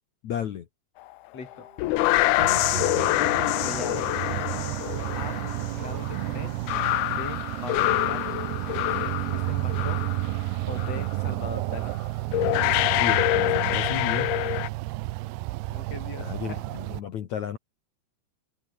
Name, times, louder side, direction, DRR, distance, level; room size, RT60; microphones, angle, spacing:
voice 1, 0.2-0.7 12.8-14.4 16.2-17.6, left 10 dB, 55° left, 2.3 m, -33 dB
voice 2, 1.3-1.9 2.3-4.1 5.2-5.4 5.7-6.5 7.1-8.5 8.9-10.0 10.7-12.0 15.7-16.6, left 4 dB, 40° left, 6.5 m, -39 dB
Brass instrument, 1.3-10.1, right 1 dB, 10° right, 7.1 m, -56 dB
sound 1, 1.5-10.4 10.7-11.1 11.9-12.0 12.3-14.7, left 18 dB, 80° left, 2.6 m, -26 dB
sound 2, 2.4-17.0, right 20 dB, 80° right, 2.7 m, -31 dB
omnidirectional pair, 4.7 m